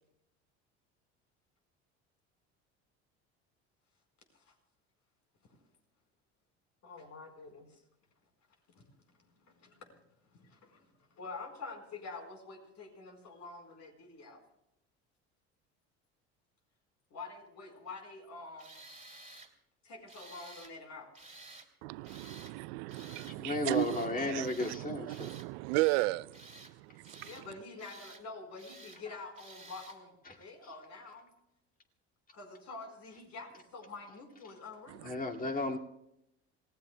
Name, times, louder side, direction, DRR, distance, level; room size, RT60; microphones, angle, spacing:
voice 1, 6.8-7.8 8.7-8.9 9.4-10.0 10.2-14.4 17.1-18.8 19.8-21.4 27.2-31.3 32.3-35.2, left 3 dB, 50° left, 4.6 m, -47 dB
Tools, 18.6-19.5 20.1-20.7 21.1-21.7 22.0-22.5 22.9-23.4 23.7-24.1 24.4-24.8 25.1-25.5 25.7-26.7 27.0-27.5 27.8-28.2 28.6-29.0 29.4-30.0, right 2 dB, 20° right, 2.9 m, -53 dB
voice 2, 21.8-27.3 34.9-35.2, right 20 dB, 75° right, 0.5 m, -35 dB
voice 3, 23.3-25.3 30.3-30.4 35.0-35.8, left 2 dB, 25° left, 2.3 m, -34 dB
27.0 x 17.5 x 2.3 m
hypercardioid pair, 75°, 34 cm